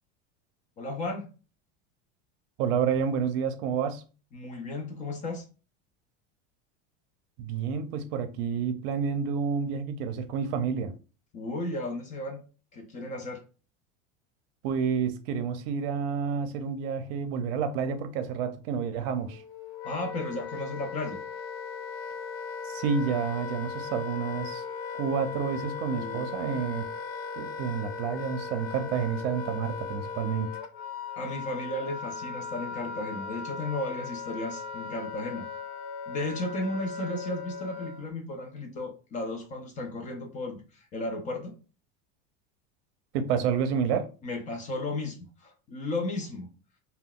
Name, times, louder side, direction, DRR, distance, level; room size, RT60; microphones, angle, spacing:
voice 1, 0.8-1.3 4.3-5.5 11.3-12.4 12.7-13.4 19.8-21.2 26.0-26.2 31.2-35.5 36.1-41.5 44.2-46.5, left 2 dB, 25° left, 0.4 m, -34 dB
voice 2, 2.6-4.0 7.4-10.9 14.6-19.4 22.7-24.6 25.0-26.8 27.4-30.5 43.1-44.1, right 6 dB, 65° right, 0.6 m, -29 dB
Wind instrument woodwind instrument, 19.3-38.1, left 5 dB, 70° left, 0.6 m, -38 dB
2.3 x 2.2 x 3.6 m
supercardioid pair, 155°, 33 cm